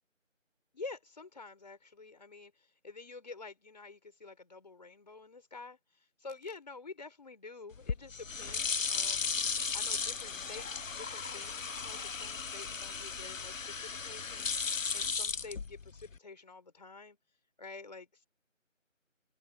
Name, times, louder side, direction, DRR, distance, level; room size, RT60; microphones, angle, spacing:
voice 1, 0.7-9.3 9.7-17.2 17.6-18.3, left 3 dB, 35° left, 4.5 m, -49 dB
sound 1, 7.7-16.2, left 5 dB, 75° left, 0.8 m, -36 dB
open air
figure-of-eight pair, 165°, 39 cm